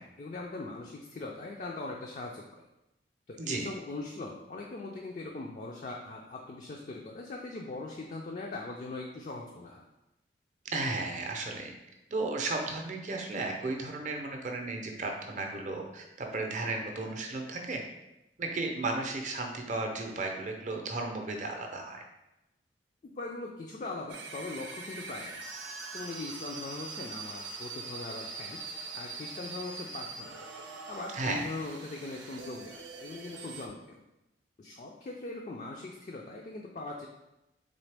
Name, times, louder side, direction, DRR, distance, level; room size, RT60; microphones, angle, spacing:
voice 1, 0.0-2.4 3.3-9.8 23.0-25.4 25.9-28.6 28.9-30.4 30.9-34.0 34.6-37.1, left 3 dB, 40° left, 0 dB, 0.3 m, -40 dB
voice 2, 3.4-3.7 10.7-11.7 12.1-17.8 18.4-22.0 31.1-31.5, right 3 dB, 40° right, 2 dB, 0.5 m, -34 dB
sound 1, 24.1-33.7, right 4 dB, 85° right, 0.6 m, -43 dB
4.0 x 3.1 x 3.3 m, 0.94 s
head